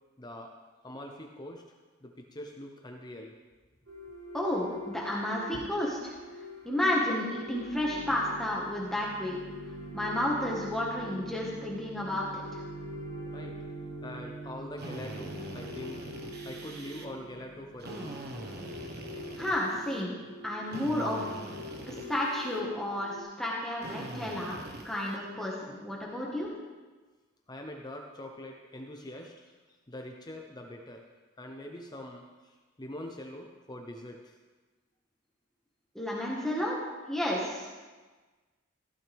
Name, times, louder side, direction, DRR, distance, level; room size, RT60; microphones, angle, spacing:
voice 1, 0.2-0.6 0.8-1.6 2.0-3.3 5.5-5.7 13.3-13.6 14.0-16.1 16.4-18.3 18.7-18.8 27.5-31.1 31.4-34.4, left 1 dB, 20° left, 2 dB, 0.8 m, -44 dB
sound 1, 3.9-23.2, equal, 85° right, 2.7 m, -44 dB
voice 2, 4.3-6.2 6.6-9.4 9.9-12.6 19.4-20.1 20.4-21.4 21.9-24.6 24.8-26.5 35.9-36.8 37.1-37.7, left 1 dB, ahead, -4 dB, 1.6 m, -31 dB
Drill, 14.8-17.1 17.8-20.0 20.7-22.6 23.8-25.2, right 1 dB, 50° right, 1.3 m, -43 dB
15.0 x 12.0 x 3.5 m, 1.3 s
head